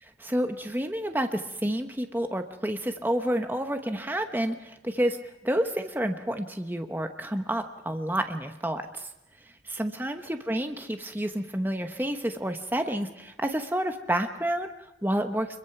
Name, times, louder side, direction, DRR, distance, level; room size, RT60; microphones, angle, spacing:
voice 1, 0.2-5.2 5.4-9.1 9.6-15.6, right 1 dB, 10° right, 6 dB, 1.0 m, -29 dB
25.5 x 22.5 x 5.9 m, 0.92 s
head